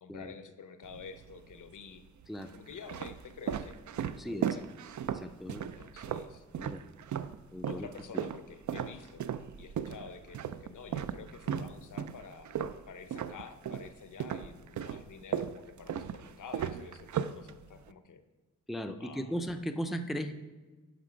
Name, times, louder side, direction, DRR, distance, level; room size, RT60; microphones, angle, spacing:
voice 1, 0.0-2.0 2.5-3.8 4.2-4.7 5.8-6.4 7.6-9.3 9.6-12.6 12.9-18.2 19.0-19.4, left 6 dB, 80° left, 10 dB, 0.8 m, -49 dB
sound 1, 0.8-1.6 2.2-7.4 7.6-13.9 14.2-17.9, right 9 dB, 70° right, 0.4 m, -36 dB
voice 2, 5.1-5.7 6.6-6.8 7.5-7.9 8.1-8.2 18.7-20.3, equal, ahead, 6 dB, 0.4 m, -37 dB
11.0 x 5.9 x 5.1 m, 1.3 s
wide cardioid pair, 160°, 31 cm